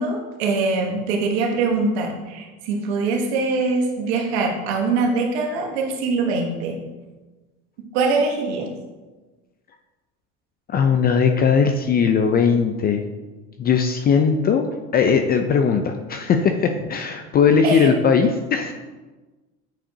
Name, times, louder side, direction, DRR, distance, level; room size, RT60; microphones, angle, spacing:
voice 1, 0.0-6.8 7.9-8.7 17.6-17.9, right 3 dB, 85° right, 1 dB, 1.2 m, -23 dB
voice 2, 10.7-13.0 13.6-14.6 14.9-18.7, left 6 dB, 30° left, 6 dB, 0.4 m, -19 dB
8.9 x 4.8 x 2.7 m, 1.2 s
supercardioid pair, 120°, 31 cm